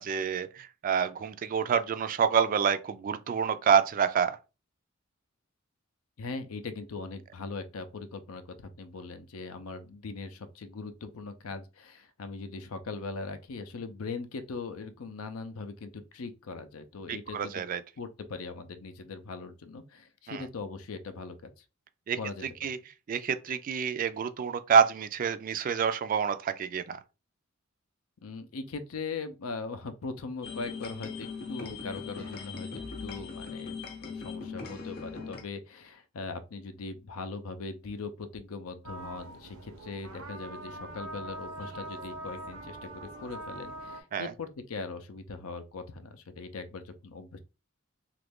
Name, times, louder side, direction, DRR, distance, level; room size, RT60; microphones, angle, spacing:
voice 1, 0.0-4.4 17.1-17.8 20.3-20.4 22.1-22.2 22.6-22.8 23.1-27.0 44.1-44.3, right 7 dB, 40° right, 0.3 m, -27 dB
voice 2, 6.2-17.6 18.0-21.6 22.2-22.5 28.2-47.4, left 4 dB, 85° left, 0.5 m, -40 dB
sound 1, 30.4-35.4, left 5 dB, 50° left, 0.8 m, -40 dB
sound 2, 38.8-44.0, right 1 dB, 85° right, 0.7 m, -42 dB
3.1 x 2.5 x 3.5 m
head